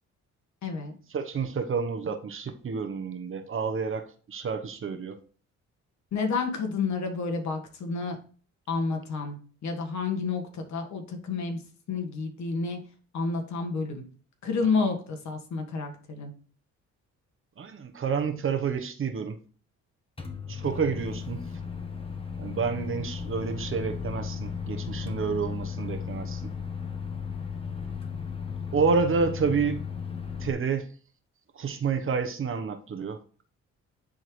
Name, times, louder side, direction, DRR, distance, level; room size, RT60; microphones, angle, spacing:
voice 1, 0.6-0.9 6.1-8.2 8.7-11.6 11.9-12.8 13.1-14.0 14.4-16.3, left 4 dB, 65° left, 1.5 m, -30 dB
voice 2, 1.1-5.2 17.6-19.4 20.5-21.5 22.4-26.5 28.7-29.8 30.4-30.9 31.5-33.2, right 5 dB, 45° right, 1.0 m, -29 dB
Microwave oven, 20.2-30.5, left 6 dB, 20° left, 1.1 m, -35 dB
10.0 x 3.8 x 3.2 m
cardioid pair, 90°, 30 cm